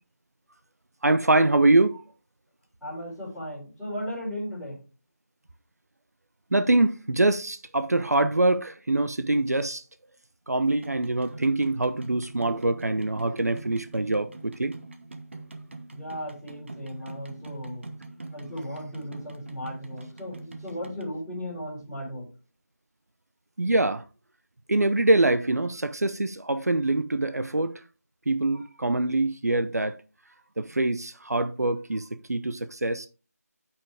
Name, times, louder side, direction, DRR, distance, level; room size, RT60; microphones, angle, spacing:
voice 1, 1.0-2.0 6.5-9.8 10.5-14.7 23.6-24.0 24.7-27.7 28.3-30.0 30.6-33.1, right 2 dB, 70° right, 0.8 m, -24 dB
voice 2, 2.8-4.8 15.9-17.9 18.3-22.3, equal, ahead, 4.1 m, -36 dB
sound 1, 10.7-21.0, right 2 dB, 45° right, 1.1 m, -44 dB
9.2 x 5.9 x 3.5 m
figure-of-eight pair, 165°, 9 cm